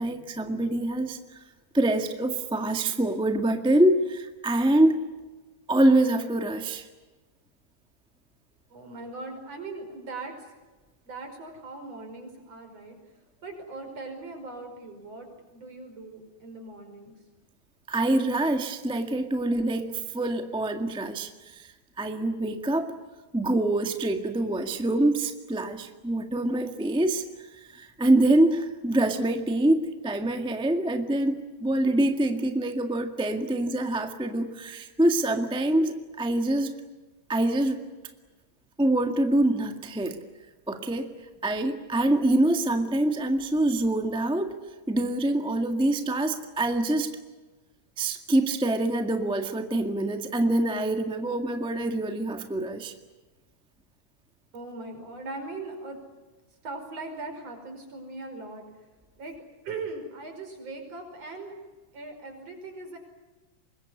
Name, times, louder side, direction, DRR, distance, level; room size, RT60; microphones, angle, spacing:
voice 1, 0.0-1.4 1.7-5.0 5.7-6.9 17.9-22.9 23.3-36.7 37.3-37.8 38.8-40.2 40.7-41.1 41.4-44.5 44.9-47.1 48.0-52.9, right 1 dB, 5° right, 6 dB, 1.1 m, -25 dB
voice 2, 8.7-10.6 11.0-13.0 13.4-17.2 54.5-56.0 56.6-58.6 59.2-59.3 59.6-61.5 61.9-63.0, right 3 dB, 55° right, 5 dB, 6.2 m, -40 dB
25.5 x 22.0 x 9.7 m, 1.2 s
omnidirectional pair, 3.3 m